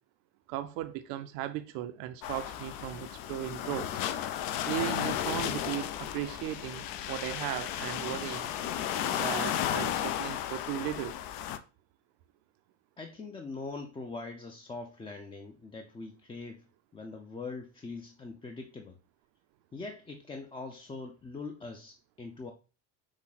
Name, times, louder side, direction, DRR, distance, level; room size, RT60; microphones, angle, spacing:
voice 1, 0.5-3.9 4.6-8.5 9.1-11.1, right 13 dB, 75° right, 0.5 m, -36 dB
sound 1, 2.2-11.6, left 11 dB, 70° left, 0.6 m, -34 dB
voice 2, 13.0-16.6 16.9-19.0 19.7-22.5, left 3 dB, 15° left, 0.4 m, -42 dB
6.0 x 2.1 x 4.0 m
cardioid pair, 120°, 36 cm